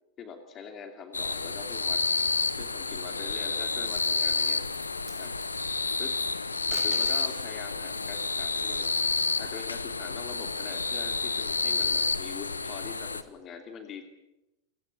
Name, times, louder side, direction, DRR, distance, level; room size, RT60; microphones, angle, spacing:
voice 1, 0.2-2.0 2.6-4.6 5.2-5.3 6.0-6.2 6.7-8.9 9.4-14.0, left 6 dB, 30° left, 6 dB, 2.8 m, -43 dB
sound 1, 1.1-13.2, left 4 dB, 80° left, 1.2 m, -29 dB
sound 2, 3.6-3.8 4.2-4.5 4.9-5.6 6.5-7.6 9.1-10.2, right 8 dB, 40° right, 6.5 m, -47 dB
29.5 x 17.5 x 8.5 m, 0.98 s
figure-of-eight pair, 90°, 0 cm